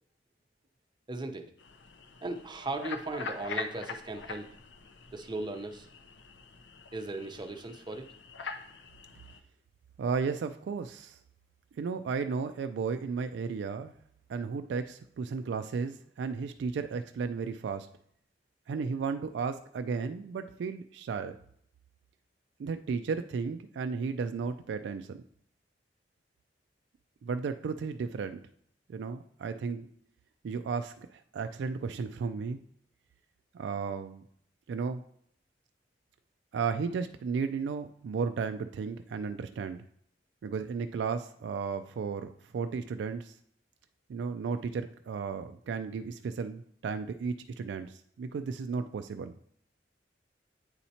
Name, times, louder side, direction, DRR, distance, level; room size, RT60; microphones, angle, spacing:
voice 1, 1.1-1.5 2.2-4.5 5.1-5.9 6.9-8.1, right 2 dB, 25° right, 5 dB, 0.6 m, -37 dB
sound 1, 1.6-9.4, left 4 dB, 80° left, 0.6 m, -43 dB
voice 2, 10.0-11.2 11.8-13.9 14.3-17.9 18.7-21.4 22.6-25.2 27.2-28.4 28.9-29.9 30.4-32.6 33.5-34.2 34.7-35.0 36.5-39.8 40.4-43.3 44.1-49.3, right 5 dB, 70° right, 8 dB, 0.3 m, -34 dB
8.9 x 4.2 x 2.8 m, 0.66 s
head